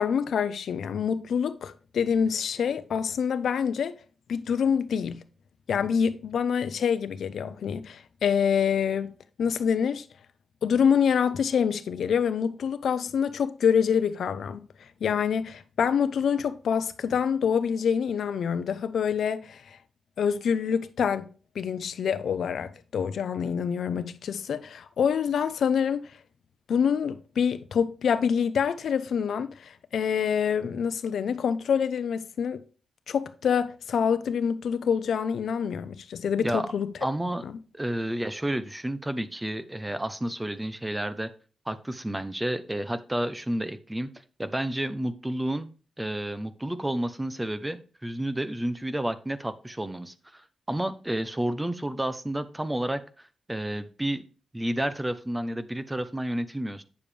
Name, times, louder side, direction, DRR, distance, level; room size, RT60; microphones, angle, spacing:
voice 1, 0.0-3.9 4.3-5.2 5.7-9.1 9.4-10.1 10.6-14.7 15.0-19.8 20.2-21.3 21.5-26.0 26.7-32.6 33.1-36.9 37.4-37.5, left 7 dB, 75° left, 0.7 m, -26 dB
voice 2, 36.4-36.7 37.0-37.4 37.7-41.3 41.7-44.1 44.4-45.7 46.0-54.2 54.5-56.8, right 1 dB, 10° right, 0.7 m, -31 dB
8.9 x 7.1 x 3.3 m
wide cardioid pair, 140°, 0 cm